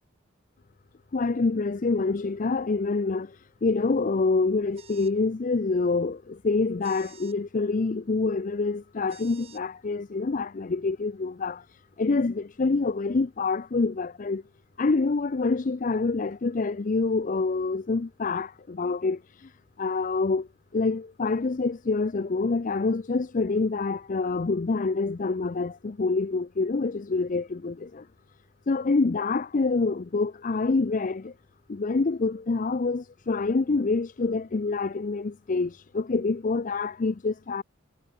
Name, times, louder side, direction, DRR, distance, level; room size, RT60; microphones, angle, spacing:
voice 1, 1.1-14.4 14.8-19.5 19.8-28.1 28.7-31.3 31.7-37.6, left 3 dB, 35° left, 0.5 m, -26 dB
sound 1, 4.7-5.2 6.8-7.4 9.1-9.6, right 8 dB, 30° right, 4.0 m, -51 dB
head